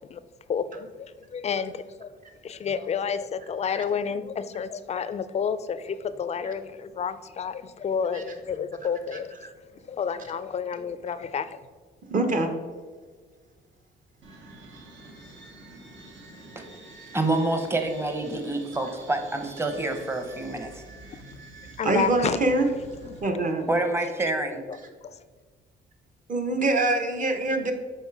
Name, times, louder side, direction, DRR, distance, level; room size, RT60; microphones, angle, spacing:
voice 1, 0.5-2.1 2.4-9.3 9.9-11.6 21.8-22.4 23.0-23.1 23.6-23.7 25.0-25.2, left 6 dB, 35° left, 0.4 m, -30 dB
voice 2, 12.1-12.5 21.8-22.7 23.2-23.7 26.3-27.7, right 2 dB, 40° right, 0.9 m, -24 dB
sound 1, 14.2-23.2, right 2 dB, 70° right, 1.1 m, -47 dB
voice 3, 17.1-20.8 23.7-24.6, right 2 dB, 10° right, 0.8 m, -27 dB
5.4 x 3.9 x 4.7 m
cardioid pair, 90°, 20 cm